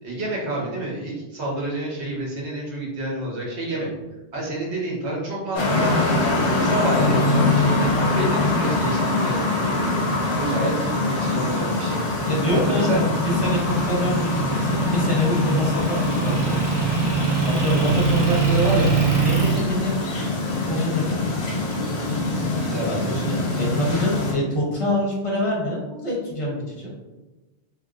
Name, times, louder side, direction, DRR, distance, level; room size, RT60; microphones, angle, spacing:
voice 1, 0.0-3.9 4.3-6.1 6.6-12.0 12.5-13.0 22.6-23.5, right 1 dB, 75° right, -4 dB, 1.2 m, -29 dB
sound 1, 5.5-24.3, left 2 dB, 80° left, 1.1 m, -24 dB
voice 2, 12.3-16.9 17.5-19.9 20.7-21.4 22.9-26.9, left 1 dB, 35° left, -4 dB, 0.7 m, -25 dB
Motor vehicle (road) / Engine, 13.2-19.6, right 6 dB, 40° right, 0.3 m, -24 dB
3.0 x 2.8 x 2.4 m, 1.1 s
omnidirectional pair, 1.2 m